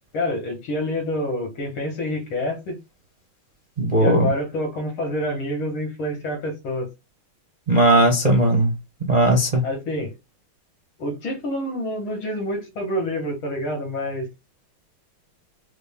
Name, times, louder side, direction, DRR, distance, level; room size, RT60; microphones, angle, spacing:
voice 1, 0.1-2.8 4.0-6.9 9.6-10.2 11.0-14.3, left 1 dB, 75° left, 2.2 m, -27 dB
voice 2, 3.8-4.3 7.7-8.7 9.1-9.6, right 1 dB, 35° right, 0.6 m, -17 dB
5.1 x 2.0 x 3.5 m
omnidirectional pair, 2.3 m